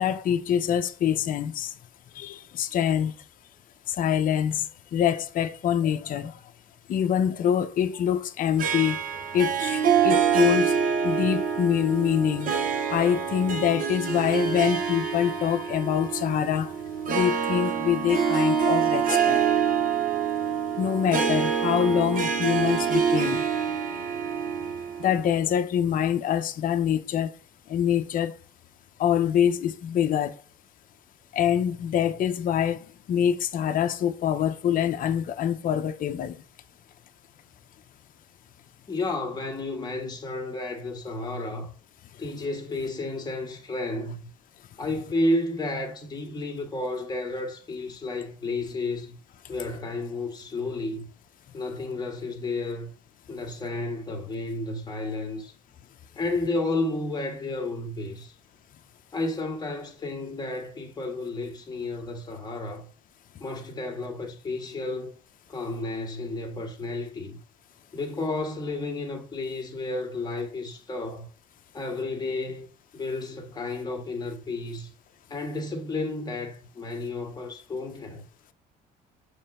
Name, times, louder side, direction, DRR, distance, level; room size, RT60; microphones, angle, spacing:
voice 1, 0.0-1.7 2.1-3.1 3.9-4.7 4.9-6.3 6.9-9.0 9.3-10.8 11.0-12.5 12.9-16.7 17.1-19.4 20.8-23.4 25.0-27.3 27.7-28.3 29.0-30.4 31.3-32.8 33.1-36.4, left 9 dB, 55° left, 0.7 m, -25 dB
Harp, 8.6-25.3, right 7 dB, 55° right, 1.2 m, -26 dB
voice 2, 38.9-41.7 42.2-44.3 44.8-49.2 49.5-51.1 51.5-52.9 53.3-55.5 56.2-58.4 59.1-62.9 63.4-65.1 65.5-67.4 67.9-71.3 71.7-72.7 72.9-74.9 75.3-78.2, left 2 dB, 25° left, 1.8 m, -32 dB
7.1 x 3.2 x 5.6 m
cardioid pair, 110°, 17 cm